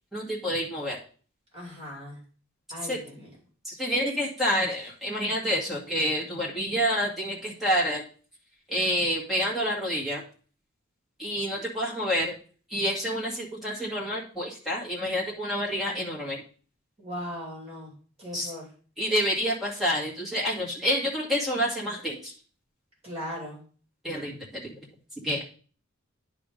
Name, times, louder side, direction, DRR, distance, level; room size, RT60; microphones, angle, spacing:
voice 1, 0.1-1.0 2.8-3.0 3.6-8.0 8.7-10.2 11.2-12.3 12.7-16.4 18.3-18.5 19.0-22.3 24.0-24.4 25.2-25.4, equal, ahead, -5 dB, 1.9 m, -28 dB
voice 2, 1.5-2.2 2.7-3.3 17.0-17.9 18.2-18.7 23.0-23.6, equal, 30° right, -4 dB, 2.7 m, -38 dB
10.0 x 3.6 x 5.1 m, 0.41 s
head